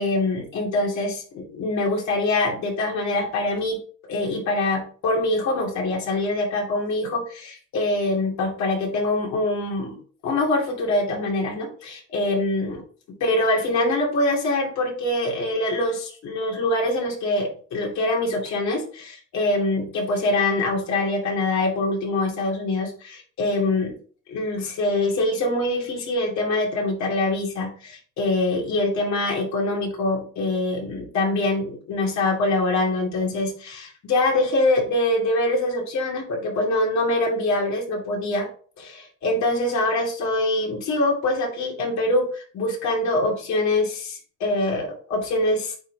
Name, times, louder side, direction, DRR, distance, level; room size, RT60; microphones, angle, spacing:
voice 1, 0.0-3.8 4.1-10.0 10.2-12.8 13.2-23.9 24.3-38.5 38.8-45.7, left 2 dB, 60° left, -1 dB, 2.7 m, -24 dB
8.8 x 3.8 x 2.9 m, 0.43 s
cardioid pair, 110°, 31 cm